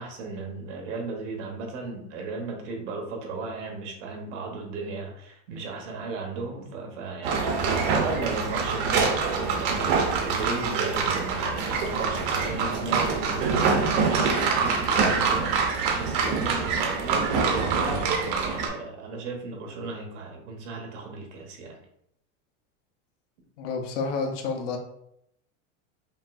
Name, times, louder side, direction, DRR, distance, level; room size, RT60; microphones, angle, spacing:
voice 1, 0.0-21.8, right 3 dB, 70° right, 2 dB, 1.2 m, -35 dB
sound 1, 7.2-18.7, right 5 dB, 45° right, 0.8 m, -25 dB
voice 2, 23.6-24.8, left 4 dB, 75° left, 3 dB, 1.0 m, -29 dB
5.3 x 2.7 x 2.6 m, 0.76 s
supercardioid pair, 160°, 37 cm